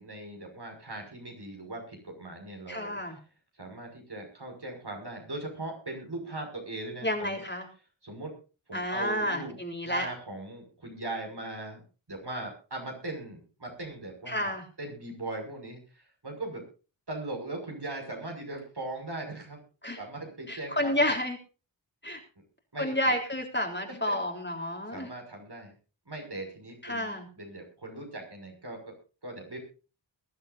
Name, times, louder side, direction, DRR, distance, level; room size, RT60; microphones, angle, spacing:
voice 1, 0.0-3.0 3.6-7.4 8.0-8.3 8.7-9.6 9.8-11.8 12.1-16.6 17.1-19.6 20.0-21.1 22.7-23.1 23.8-24.2 24.9-25.7 26.1-28.9 29.2-29.6, right 2 dB, 60° right, 2 dB, 5.9 m, -39 dB
voice 2, 2.7-3.2 7.0-7.7 8.7-10.1 14.3-14.6 19.8-20.0 20.5-21.4 22.0-22.2 22.8-25.1 26.8-27.3, left 1 dB, 25° left, 2 dB, 3.7 m, -30 dB
22.0 x 11.5 x 2.6 m, 0.34 s
wide cardioid pair, 55°, 46 cm